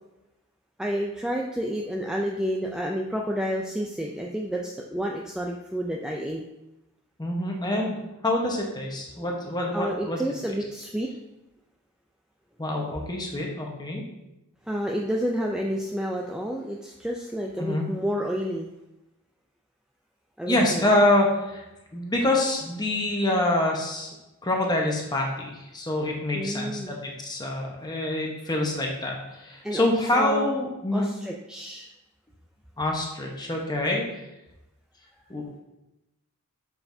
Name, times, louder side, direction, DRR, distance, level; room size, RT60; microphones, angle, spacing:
voice 1, 0.8-6.4 9.2-9.5 9.7-11.1 14.7-18.7 20.4-20.9 26.3-26.9 29.6-30.6 30.9-31.9, equal, 5° right, -1 dB, 0.3 m, -30 dB
voice 2, 7.2-10.2 12.6-14.0 17.6-17.9 20.5-21.6 21.9-24.1 24.4-31.1 32.8-34.0 35.3-35.6, left 1 dB, 20° left, 0 dB, 1.0 m, -26 dB
7.0 x 5.4 x 2.7 m, 0.95 s
head